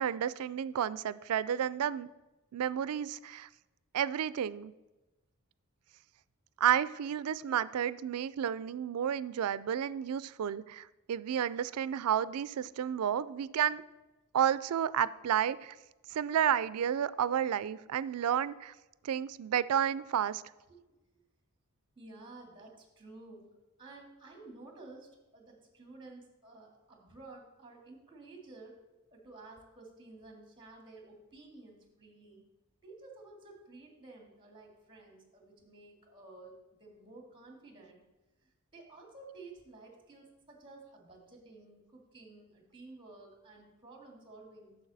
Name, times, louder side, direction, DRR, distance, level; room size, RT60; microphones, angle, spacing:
voice 1, 0.0-2.1 2.5-3.5 3.9-4.7 6.6-13.8 14.3-15.8 16.1-18.7 19.0-20.4, right 9 dB, 90° right, 18 dB, 0.4 m, -31 dB
voice 2, 22.0-23.5 23.8-28.8 29.1-32.4 32.8-38.0 38.4-44.8, right 2 dB, 25° right, 2 dB, 2.0 m, -53 dB
9.9 x 7.0 x 4.1 m, 1.1 s
head